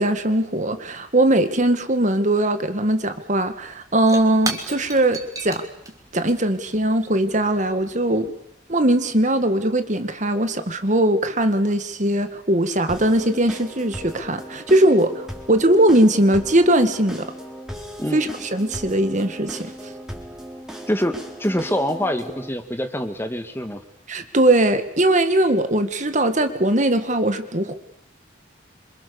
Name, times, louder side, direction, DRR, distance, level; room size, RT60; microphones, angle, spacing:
voice 1, 0.0-5.6 6.1-8.3 8.7-17.3 18.1-19.7 24.1-27.7, right 1 dB, 40° right, 9 dB, 1.9 m, -20 dB
Shatter / Crushing, 3.7-8.3, right 3 dB, 20° right, 2.9 m, -36 dB
sound 1, 12.9-22.5, equal, 5° right, 4.2 m, -37 dB
voice 2, 20.9-23.8, equal, 10° left, 7 dB, 2.0 m, -25 dB
27.5 x 26.0 x 7.1 m, 0.77 s
head